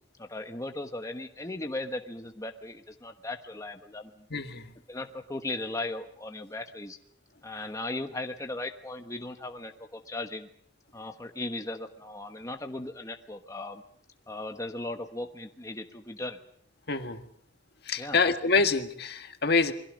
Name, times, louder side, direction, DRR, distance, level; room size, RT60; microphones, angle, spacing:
voice 1, 0.2-4.3 4.9-7.0 7.4-10.5 10.9-13.8 14.3-16.4 18.0-18.2, left 2 dB, 20° left, 5 dB, 1.2 m, -37 dB
voice 2, 4.3-4.7 16.9-17.3 17.8-19.7, left 4 dB, 65° left, 6 dB, 1.8 m, -26 dB
28.5 x 22.5 x 5.3 m, 0.67 s
head